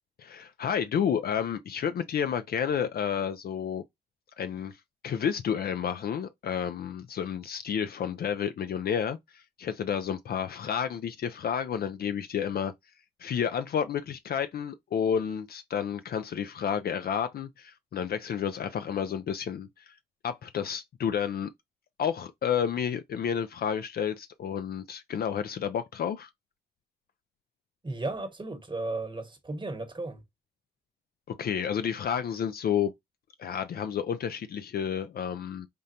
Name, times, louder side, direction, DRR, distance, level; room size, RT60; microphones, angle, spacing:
voice 1, 0.2-3.8 4.4-12.7 13.2-19.9 20.2-21.5 22.0-26.3 31.3-32.9 33.4-35.7, left 8 dB, 65° left, 0.4 m, -30 dB
voice 2, 27.8-30.2, right 2 dB, 30° right, 0.9 m, -35 dB
5.1 x 2.1 x 2.7 m
cardioid pair, 65°, 17 cm